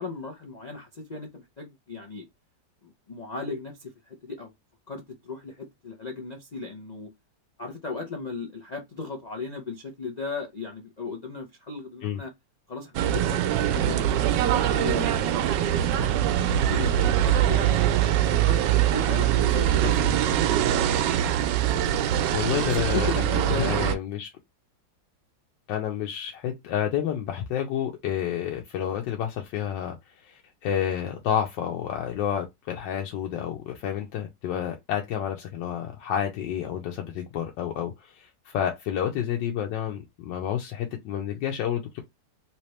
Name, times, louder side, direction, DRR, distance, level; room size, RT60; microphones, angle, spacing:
voice 1, 0.0-2.3 2.8-4.5 4.9-7.1 7.6-12.3 12.7-17.8 18.3-18.6 18.9-20.3 22.5-23.8, left 4 dB, 60° left, 0.4 m, -36 dB
sound 1, 12.9-23.9, right 11 dB, 85° right, 1.2 m, -23 dB
cute melody, 13.3-23.1, right 5 dB, 60° right, 1.0 m, -41 dB
voice 2, 19.8-20.1 22.3-24.3 25.7-30.0 30.2-42.0, left 9 dB, 90° left, 1.4 m, -30 dB
3.3 x 2.9 x 3.1 m
omnidirectional pair, 1.9 m